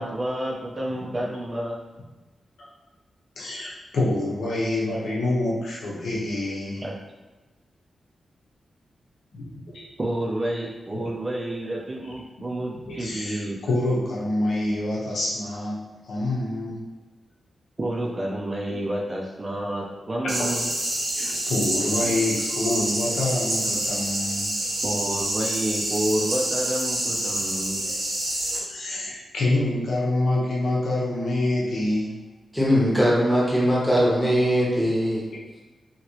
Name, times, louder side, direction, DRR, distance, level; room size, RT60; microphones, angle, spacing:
voice 1, 0.0-1.8 6.8-7.0 10.0-13.6 17.8-20.7 24.8-27.9 28.4-28.5 28.8-28.9, right 1 dB, 25° right, -2 dB, 0.4 m, -29 dB
voice 2, 3.4-6.9 9.3-9.9 10.9-11.1 11.9-12.1 12.8-16.8 18.7-18.8 19.9-20.0 20.4-20.6 21.2-24.7 27.7-27.8 28.7-32.1, left 2 dB, 80° left, -5 dB, 0.9 m, -27 dB
sound 1, 20.3-28.6, right 1 dB, 80° right, 1.1 m, -27 dB
voice 3, 32.5-35.3, equal, 5° left, -6 dB, 0.8 m, -20 dB
2.9 x 2.8 x 2.9 m, 1.2 s
wide cardioid pair, 165°, 0 cm